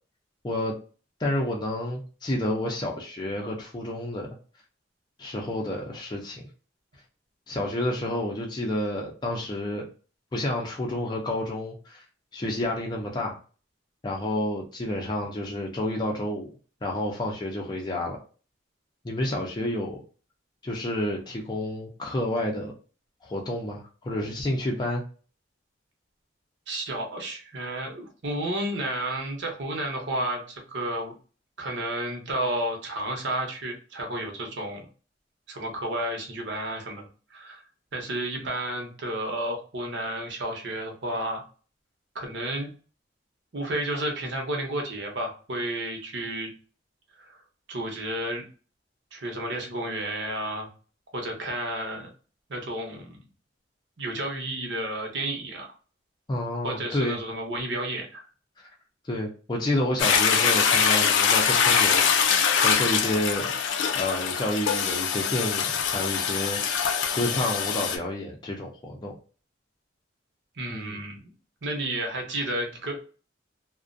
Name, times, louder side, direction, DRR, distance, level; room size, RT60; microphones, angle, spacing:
voice 1, 0.4-0.8 1.2-4.3 5.2-6.4 7.5-9.9 10.3-12.0 12.3-13.4 14.0-16.5 16.8-18.2 19.0-20.0 20.6-22.7 23.2-25.0 56.3-57.2 59.1-62.4 62.6-63.5 63.9-69.1 70.7-71.0, left 1 dB, 25° left, -1 dB, 0.4 m, -30 dB
voice 2, 26.7-31.1 31.6-34.9 35.5-37.0 37.3-37.6 37.9-41.4 42.1-42.7 43.5-46.5 47.2-47.4 47.7-48.5 49.1-50.7 51.1-52.1 52.5-53.1 54.0-55.7 56.6-58.3 70.6-71.3 71.6-73.0, right 1 dB, 70° right, 2 dB, 0.8 m, -31 dB
Toilet flush, 60.0-68.0, left 6 dB, 80° left, 0.4 m, -23 dB
2.4 x 2.1 x 2.5 m, 0.37 s
head